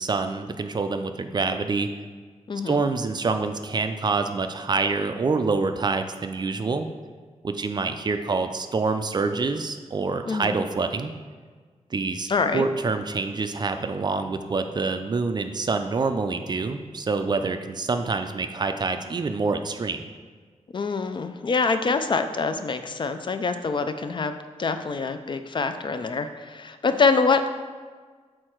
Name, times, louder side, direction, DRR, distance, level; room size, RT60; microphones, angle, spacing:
voice 1, 0.0-1.9 2.7-6.9 7.4-11.1 11.9-20.0, right 4 dB, 35° right, 7 dB, 0.4 m, -26 dB
voice 2, 2.5-2.8 10.3-10.6 12.3-12.7 20.7-27.5, left 4 dB, 40° left, 9 dB, 0.3 m, -25 dB
6.5 x 4.3 x 4.5 m, 1.5 s
wide cardioid pair, 135°, 13 cm